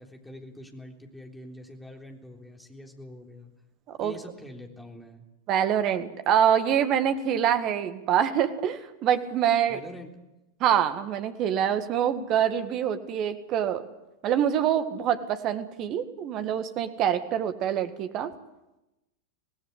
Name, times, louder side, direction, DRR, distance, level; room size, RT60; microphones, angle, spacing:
voice 1, 0.0-3.5 4.0-5.2 9.7-10.1, left 1 dB, 5° left, 2 dB, 3.6 m, -45 dB
voice 2, 5.5-9.8 10.6-13.9 14.2-18.3, right 9 dB, 35° right, 10 dB, 1.9 m, -25 dB
25.5 x 18.5 x 8.2 m, 0.98 s
figure-of-eight pair, 90°, 0 cm